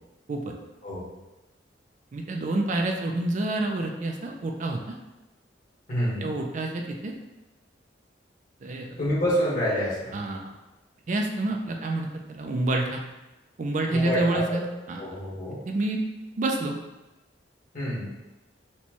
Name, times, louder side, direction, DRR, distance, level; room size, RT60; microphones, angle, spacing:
voice 1, 2.1-4.8 6.2-7.1 8.6-8.9 10.1-10.5 11.1-13.0 13.6-15.0 15.7-16.0 16.4-16.8, right 2 dB, 45° right, 2 dB, 0.4 m, -28 dB
voice 2, 5.9-6.3 9.0-10.2 13.9-14.6 15.0-15.6 17.7-18.1, equal, 50° left, -8 dB, 1.5 m, -27 dB
4.2 x 2.2 x 3.0 m, 1.0 s
head